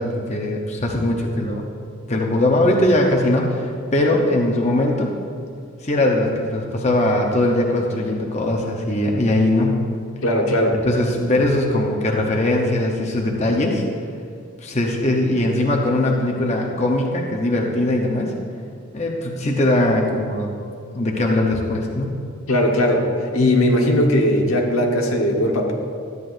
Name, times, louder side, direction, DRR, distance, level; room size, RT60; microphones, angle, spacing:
voice 1, 0.0-1.7 2.1-5.1 5.8-9.8 10.8-13.8 14.6-18.3 18.9-20.5 20.9-22.1, left 1 dB, 30° left, 0 dB, 0.8 m, -20 dB
voice 2, 10.2-10.8 22.5-23.1 23.3-25.7, left 1 dB, 85° left, 1 dB, 1.2 m, -18 dB
13.0 x 9.5 x 2.6 m, 2.2 s
head